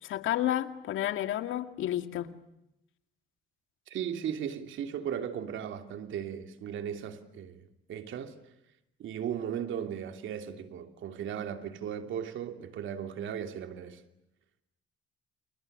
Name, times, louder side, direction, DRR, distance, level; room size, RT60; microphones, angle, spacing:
voice 1, 0.0-2.3, left 12 dB, 85° left, 2.3 m, -31 dB
voice 2, 3.9-7.6 7.9-8.4 9.0-14.0, right 8 dB, 75° right, 3.0 m, -36 dB
30.0 x 29.5 x 6.8 m
cardioid pair, 90°, 20 cm